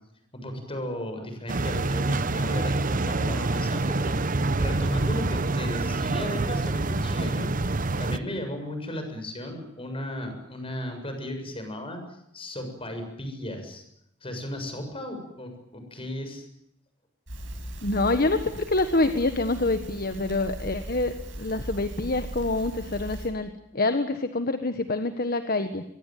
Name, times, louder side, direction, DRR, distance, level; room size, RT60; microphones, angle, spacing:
voice 1, 0.3-7.5 8.0-13.8 14.2-16.4, left 1 dB, 30° left, 6 dB, 7.2 m, -35 dB
sound 1, 1.5-8.2, right 2 dB, 45° right, 1.0 m, -26 dB
Crackle, 17.3-23.3, equal, 75° right, 7.1 m, -38 dB
voice 2, 17.8-25.8, left 2 dB, 50° left, 9 dB, 1.4 m, -26 dB
24.0 x 23.0 x 9.2 m, 0.80 s
head